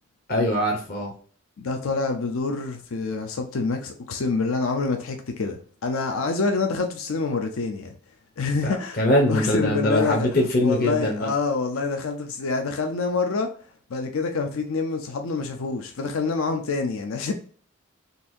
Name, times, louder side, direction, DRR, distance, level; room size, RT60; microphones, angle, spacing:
voice 1, 0.3-1.1 8.6-11.3, left 1 dB, 45° left, 0.7 m, -22 dB
voice 2, 1.6-7.9 8.4-9.0 9.3-10.3 10.6-13.5 13.9-17.3, left 4 dB, 75° left, 0.5 m, -26 dB
4.0 x 2.5 x 2.6 m
head